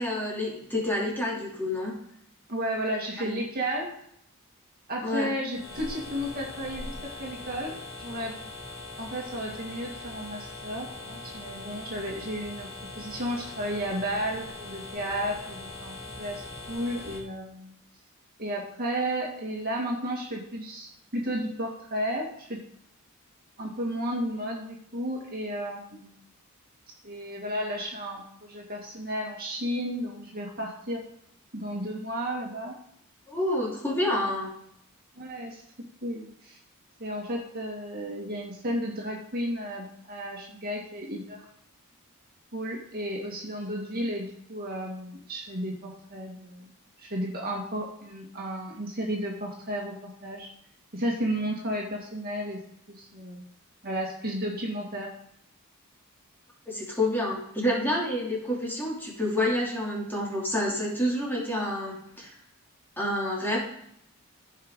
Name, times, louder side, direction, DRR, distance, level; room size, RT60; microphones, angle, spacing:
voice 1, 0.0-2.0 3.2-3.4 5.0-5.3 33.3-34.5 56.7-62.3 63.0-63.6, left 1 dB, 10° left, -4 dB, 2.7 m, -28 dB
voice 2, 2.5-3.9 4.9-8.3 9.0-12.7 13.0-17.8 18.4-22.6 23.6-26.1 27.0-31.0 31.5-32.8 35.2-35.6 36.0-36.6 37.0-41.4 42.5-46.7 47.0-50.5 50.9-52.6 52.9-53.4 53.8-55.1, equal, 45° right, -1 dB, 2.0 m, -33 dB
sound 1, 5.5-17.2, left 2 dB, 25° left, 2.0 m, -41 dB
15.0 x 5.6 x 3.7 m, 0.72 s
head